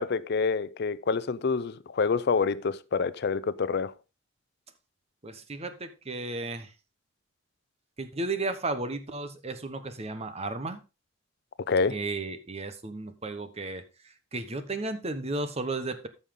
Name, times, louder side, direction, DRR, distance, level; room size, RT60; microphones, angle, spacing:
voice 1, 0.0-3.9 11.6-12.0, left 5 dB, 60° left, 0.5 m, -27 dB
voice 2, 5.2-6.7 8.0-10.8 11.9-13.8 14.3-16.1, right 2 dB, 35° right, 1.1 m, -34 dB
13.5 x 5.7 x 3.7 m
head